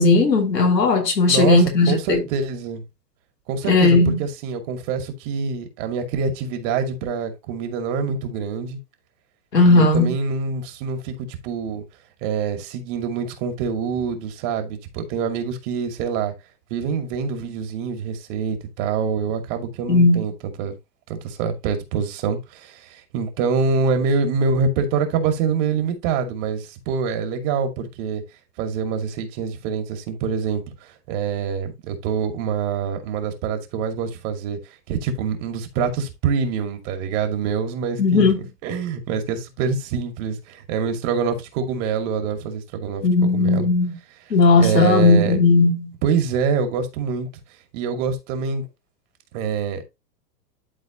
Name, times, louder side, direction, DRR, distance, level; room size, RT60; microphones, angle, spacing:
voice 1, 0.0-2.2 3.7-4.2 9.5-10.1 19.9-20.2 38.0-38.5 43.0-43.9 44.3-45.9, left 3 dB, 85° left, 2.9 m, -16 dB
voice 2, 1.3-2.8 3.5-8.8 9.6-11.8 12.2-16.3 16.7-20.3 20.6-20.7 21.1-28.2 28.6-34.6 34.9-43.7 44.6-45.4 46.0-47.3 47.7-48.7 49.3-49.8, right 6 dB, 45° right, 2.4 m, -25 dB
12.0 x 4.1 x 2.8 m
hypercardioid pair, 110°, 48 cm